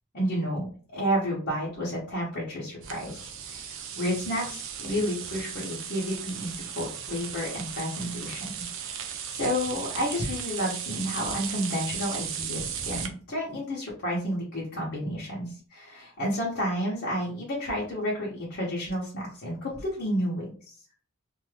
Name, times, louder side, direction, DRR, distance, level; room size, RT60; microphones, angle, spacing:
voice 1, 0.1-3.2 3.5-8.7 9.0-20.4, equal, 50° left, -7 dB, 0.9 m, -31 dB
sound 1, 2.8-13.1, right 8 dB, 60° right, 0.5 m, -36 dB
2.6 x 2.3 x 3.2 m, 0.42 s
head